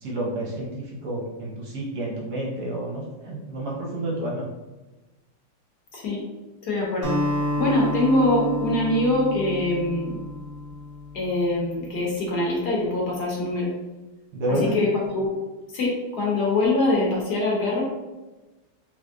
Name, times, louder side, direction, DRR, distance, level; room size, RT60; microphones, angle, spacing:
voice 1, 0.0-4.5 14.3-14.8, right 1 dB, 60° right, -4 dB, 1.2 m, -29 dB
voice 2, 5.9-6.2 6.6-7.2 7.6-10.2 11.1-13.7 14.5-15.3 15.7-17.8, left 2 dB, 60° left, -3 dB, 1.3 m, -23 dB
Acoustic guitar, 7.0-11.5, equal, 15° right, 1.0 m, -29 dB
3.5 x 3.2 x 2.5 m, 1.1 s
omnidirectional pair, 2.0 m